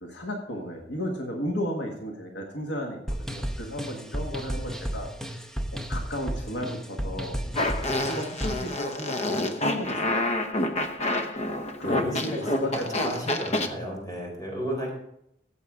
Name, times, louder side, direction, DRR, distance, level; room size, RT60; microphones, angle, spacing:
voice 1, 0.0-5.5 5.7-10.4 11.8-13.1, equal, 75° left, 1 dB, 1.6 m, -34 dB
sound 1, 3.1-8.7, equal, ahead, 0.8 m, -33 dB
Fart, 7.6-13.7, left 1 dB, 40° left, 0.9 m, -28 dB
voice 2, 11.8-14.9, equal, 20° left, -1 dB, 4.0 m, -33 dB
14.0 x 8.1 x 3.6 m, 0.76 s
head